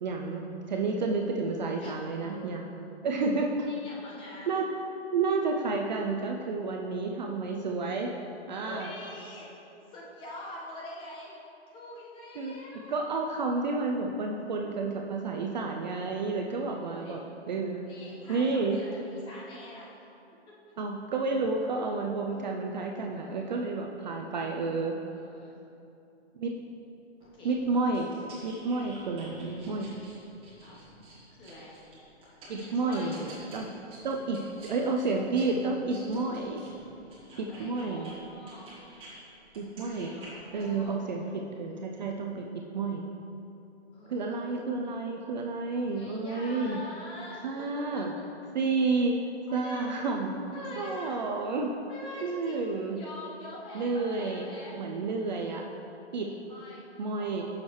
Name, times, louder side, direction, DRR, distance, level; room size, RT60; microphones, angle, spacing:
voice 1, 0.0-2.6 3.0-3.7 4.5-4.7 5.1-8.1 8.5-8.9 12.4-12.5 12.9-18.0 18.3-18.8 20.8-25.0 26.3-26.6 27.4-28.1 28.4-29.9 32.5-33.7 34.0-36.6 37.4-38.2 39.6-40.2 40.5-43.0 44.1-46.8 47.4-48.1 48.5-49.2 49.5-50.4 50.8-51.8 52.2-53.0 53.7-54.5 54.8-55.6 56.1-56.3 57.0-57.4, right 3 dB, 40° right, 1 dB, 0.5 m, -30 dB
voice 2, 3.7-4.5 8.6-9.5 9.9-11.4 11.7-13.1 16.7-17.2 17.9-20.0 20.5-20.6 23.1-23.6 25.0-25.6 27.2-27.6 30.6-30.9 31.4-31.8 32.5-33.2 37.3-38.7 39.8-40.9 43.9-44.4 45.8-48.0 49.5-49.9 50.5-51.2 51.9-54.8 56.5-57.4, left 1 dB, 15° left, -5 dB, 1.0 m, -45 dB
sound 1, 27.2-39.1 39.5-40.8, right 1 dB, 15° right, 1.6 m, -51 dB
8.3 x 6.5 x 3.1 m, 2.8 s
hypercardioid pair, 150°, 34 cm